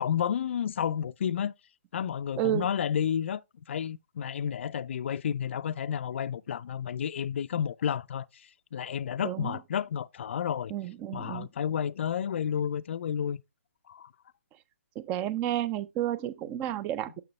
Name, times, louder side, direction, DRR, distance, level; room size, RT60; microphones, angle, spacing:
voice 1, 0.0-1.5 1.9-3.4 3.7-10.7 11.1-13.4 13.9-14.1, left 8 dB, 55° left, 0.4 m, -31 dB
voice 2, 2.4-2.7 9.2-9.6 10.7-11.5 15.0-17.2, right 12 dB, 20° right, 0.5 m, -31 dB
6.6 x 6.3 x 3.2 m
figure-of-eight pair, 140°, 8 cm